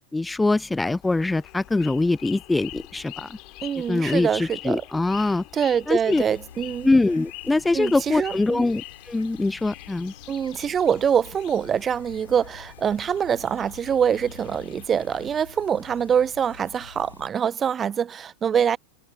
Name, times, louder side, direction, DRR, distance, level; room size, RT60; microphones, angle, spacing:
voice 1, 0.1-3.4 3.9-5.4 5.9-6.2 6.8-10.1, left 2 dB, 10° left, 0.5 m, -23 dB
sound 1, 1.0-15.4, left 23 dB, 40° left, 3.1 m, -45 dB
voice 2, 3.6-4.8 5.5-6.9 7.7-8.7 10.3-18.8, right 8 dB, 20° right, 0.9 m, -24 dB
sound 2, 6.1-17.3, left 7 dB, 70° left, 4.1 m, -48 dB
figure-of-eight pair, 90°, 0 cm